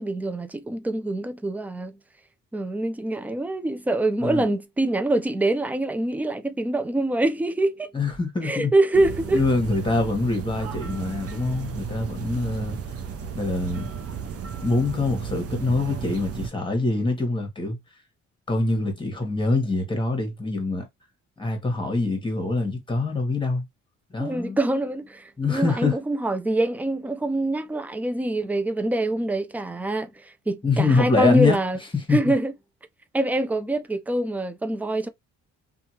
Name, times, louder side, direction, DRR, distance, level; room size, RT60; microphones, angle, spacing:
voice 1, 0.0-1.9 2.5-7.9 8.4-9.4 24.2-31.8 32.1-32.5 33.1-35.1, right 2 dB, 5° right, 0.4 m, -25 dB
voice 2, 7.9-8.7 9.3-12.8 13.3-13.9 14.6-17.8 18.5-20.9 21.4-23.7 24.1-24.6 25.4-26.0 30.6-31.6 32.1-32.3, left 3 dB, 15° left, 1.3 m, -24 dB
sound 1, 8.9-16.5, right 6 dB, 50° right, 0.7 m, -34 dB
2.7 x 2.4 x 2.8 m
cardioid pair, 90°, 30 cm